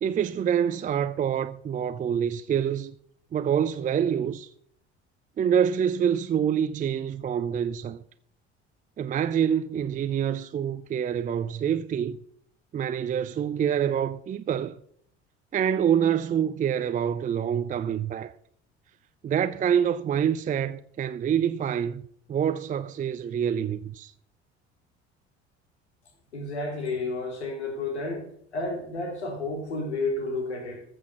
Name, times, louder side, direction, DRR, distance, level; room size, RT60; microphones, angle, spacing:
voice 1, 0.0-3.0 3.3-4.5 5.4-8.0 9.0-12.2 12.7-14.8 15.5-18.3 19.2-22.0 22.3-24.1, right 8 dB, 25° right, 0.5 m, -26 dB
voice 2, 26.3-28.3 28.5-30.8, left 2 dB, 75° left, 2.9 m, -31 dB
14.5 x 6.2 x 7.3 m
figure-of-eight pair, 55°, 33 cm